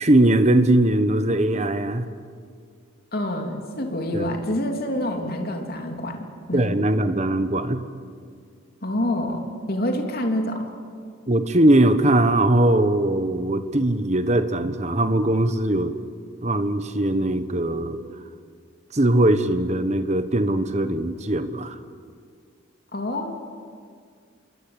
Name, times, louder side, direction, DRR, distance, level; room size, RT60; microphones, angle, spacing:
voice 1, 0.0-2.1 4.1-4.3 6.5-7.8 11.3-16.0 16.4-18.0 18.9-21.8, right 1 dB, 35° right, 10 dB, 1.3 m, -20 dB
voice 2, 3.1-6.7 6.9-7.0 8.8-10.7 22.9-23.4, left 1 dB, 50° left, 3 dB, 3.0 m, -27 dB
27.5 x 22.0 x 8.8 m, 2.1 s
head